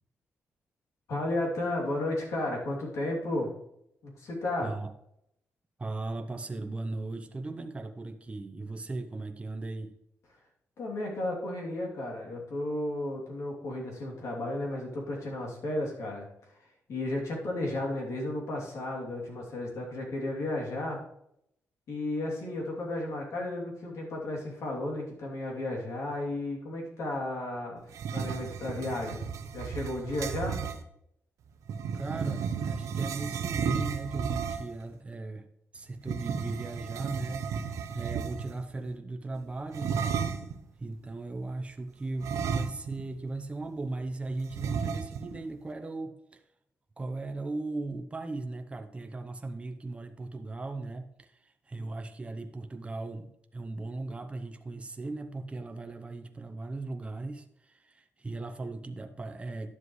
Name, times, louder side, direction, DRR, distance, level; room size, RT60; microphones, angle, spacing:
voice 1, 1.1-3.5 4.0-4.7 10.8-16.3 16.9-21.0 21.9-27.8 28.1-29.2 29.5-30.6, left 1 dB, 70° left, -1 dB, 2.9 m, -33 dB
voice 2, 5.8-9.9 31.9-35.5 35.7-40.2 40.8-46.4 47.0-59.7, right 2 dB, 20° right, 7 dB, 0.8 m, -38 dB
sound 1, 27.9-30.8 31.7-34.8 36.0-38.6 39.7-40.6 42.2-43.1 43.4-43.5 44.5-45.4, right 6 dB, 80° right, 0.7 m, -33 dB
11.0 x 7.5 x 3.2 m, 0.77 s
cardioid pair, 90°, 5 cm